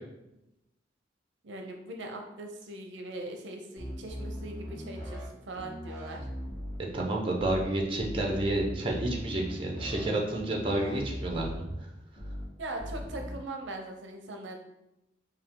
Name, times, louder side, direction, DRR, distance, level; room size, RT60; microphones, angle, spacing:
voice 1, 1.4-6.3 12.6-14.6, right 2 dB, 70° right, 3 dB, 0.5 m, -40 dB
sound 1, 3.8-5.3 5.6-6.8 7.4-7.6 8.0-10.1 10.4-11.6 12.2-12.4 12.8-13.3, equal, 20° left, 1.3 m, -39 dB
voice 2, 6.9-11.9, right 1 dB, 25° right, 0 dB, 0.7 m, -30 dB
4.8 x 2.7 x 3.6 m, 0.91 s
head